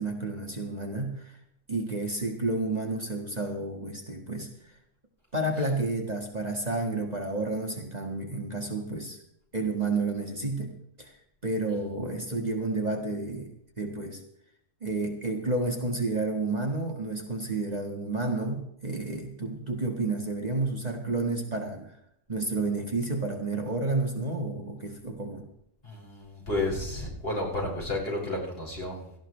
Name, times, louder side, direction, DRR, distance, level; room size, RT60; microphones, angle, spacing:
voice 1, 0.0-1.4 1.7-4.5 5.3-9.2 9.5-10.7 11.0-11.1 11.4-13.5 13.8-14.2 14.8-21.9 22.3-25.5, right 2 dB, 35° right, 2 dB, 1.8 m, -30 dB
voice 2, 25.8-29.2, left 2 dB, 50° left, -3 dB, 5.9 m, -32 dB
17.5 x 14.0 x 3.3 m, 0.75 s
omnidirectional pair, 1.3 m